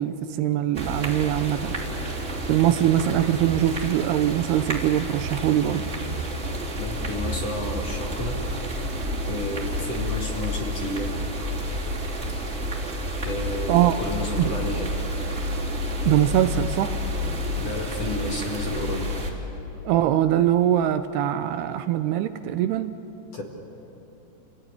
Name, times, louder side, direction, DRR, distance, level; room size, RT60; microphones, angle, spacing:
voice 1, 0.0-1.7 2.5-5.9 13.7-14.0 14.4-14.5 16.0-17.0 19.9-23.0, right 12 dB, 80° right, 10 dB, 2.6 m, -22 dB
sound 1, 0.7-19.3, equal, 15° right, 3.2 m, -30 dB
voice 2, 6.8-8.6 9.3-11.1 13.2-15.0 17.6-19.1 23.3-23.4, left 2 dB, 45° left, 0 dB, 2.5 m, -31 dB
28.5 x 17.0 x 9.8 m, 3.0 s
omnidirectional pair, 4.9 m